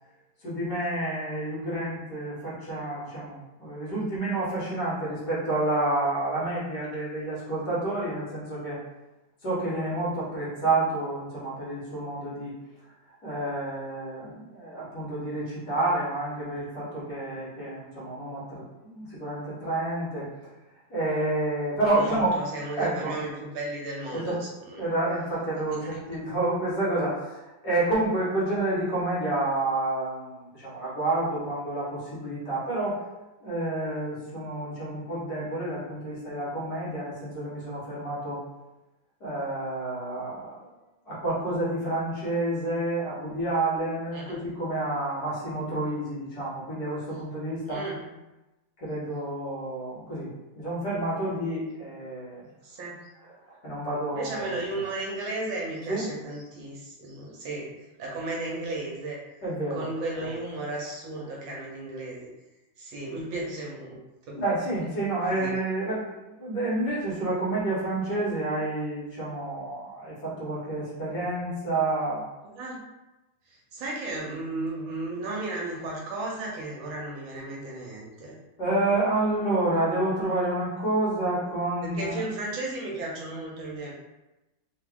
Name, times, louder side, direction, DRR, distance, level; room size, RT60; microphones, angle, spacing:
voice 1, 0.4-8.8 9.4-12.5 13.2-20.3 20.9-22.3 22.8-23.1 24.1-24.4 24.7-33.0 33.4-38.4 39.2-40.7 41.1-47.8 48.8-52.5 53.6-54.6 55.9-56.1 59.4-59.9 60.2-60.3 64.3-72.2 78.6-82.2, right 2 dB, 50° left, -8 dB, 1.9 m, -29 dB
voice 2, 21.9-24.9 25.8-25.9 44.1-44.4 47.7-48.1 52.6-53.0 54.1-57.7 58.0-59.2 59.7-62.3 62.8-64.0 64.3-64.4 65.3-65.6 72.5-72.8 73.5-78.4 81.8-83.9, right 2 dB, 70° right, -3 dB, 1.5 m, -34 dB
3.8 x 2.9 x 3.6 m, 1.0 s
omnidirectional pair, 2.3 m